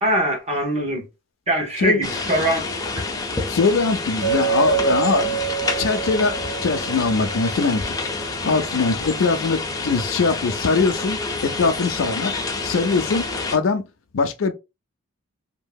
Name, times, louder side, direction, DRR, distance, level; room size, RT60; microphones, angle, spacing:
voice 1, 0.0-1.1 1.5-2.6 2.9-3.1, right 1 dB, 35° right, 1.0 m, -22 dB
sound 1, 2.0-13.6, left 3 dB, 20° left, 0.5 m, -28 dB
voice 2, 3.5-5.4 5.8-8.0 8.4-11.2 11.4-13.8 14.1-14.5, left 4 dB, 70° left, 0.5 m, -22 dB
Chink clink, 4.2-8.2, right 10 dB, 85° right, 1.1 m, -27 dB
2.9 x 2.7 x 2.2 m
head